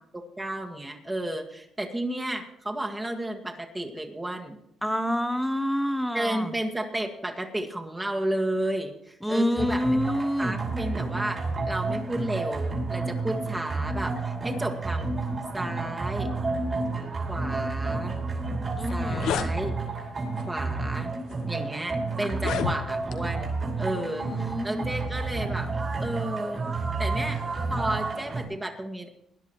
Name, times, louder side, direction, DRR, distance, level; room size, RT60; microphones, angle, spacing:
voice 1, 0.1-4.6 6.1-15.1 15.5-16.3 17.3-18.2 18.9-19.7 20.5-21.1 21.5-23.5 23.8-25.7 26.0-27.4 27.7-29.1, right 1 dB, 15° right, 3 dB, 1.8 m, -32 dB
voice 2, 4.8-6.5 9.2-10.6 18.8-19.5 23.8-24.9, equal, ahead, 10 dB, 0.9 m, -28 dB
sound 1, 9.6-28.5, right 3 dB, 40° right, 4.7 m, -30 dB
sound 2, 18.8-19.5 20.4-20.6 21.3-21.4 22.3-23.2, left 8 dB, 85° left, 0.8 m, -30 dB
20.0 x 11.0 x 3.1 m, 0.76 s
cardioid pair, 90°, 0 cm